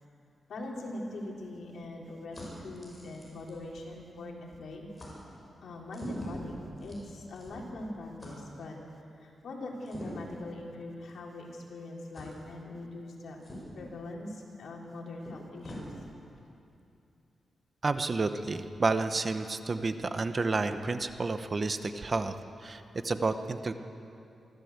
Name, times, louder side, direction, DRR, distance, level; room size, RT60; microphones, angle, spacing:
voice 1, 0.5-4.9 5.6-8.8 9.1-13.4 13.8-15.9, left 1 dB, 70° left, -1 dB, 3.8 m, -42 dB
sound 1, 0.8-4.3 4.5-4.7 4.9-5.2 5.9-7.8 8.2-8.4 9.8-10.4 11.1-11.2 12.1-12.3 13.4-13.9 14.8-14.9 15.2-15.9, left 1 dB, 20° left, 6.2 m, -45 dB
voice 2, 17.8-22.3 22.6-23.7, right 3 dB, 35° right, 9 dB, 0.9 m, -30 dB
24.5 x 14.5 x 8.1 m, 2.7 s
wide cardioid pair, 140°, 0 cm